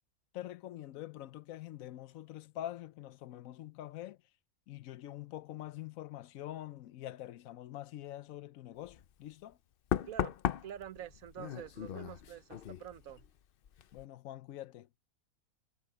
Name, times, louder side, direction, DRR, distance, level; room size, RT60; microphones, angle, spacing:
voice 1, 0.3-4.2 4.7-9.6 13.9-15.1, left 13 dB, 75° left, 1.0 m, -45 dB
Knock, 8.8-9.1 9.9-13.4 13.6-14.0, left 9 dB, 55° left, 0.6 m, -37 dB
voice 2, 10.1-10.4 10.6-13.2, right 10 dB, 75° right, 1.2 m, -47 dB
omnidirectional pair, 1.5 m